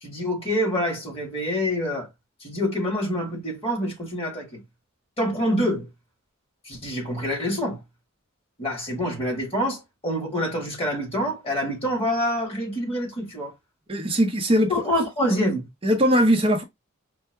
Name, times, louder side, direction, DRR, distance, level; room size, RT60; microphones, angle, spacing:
voice 1, 0.0-2.1 2.4-4.6 5.2-5.9 6.7-7.8 8.6-13.5 14.7-15.7, equal, 30° left, 1.9 m, -26 dB
voice 2, 13.9-14.9 15.8-16.6, equal, 25° right, 0.6 m, -20 dB
4.5 x 2.0 x 3.3 m
head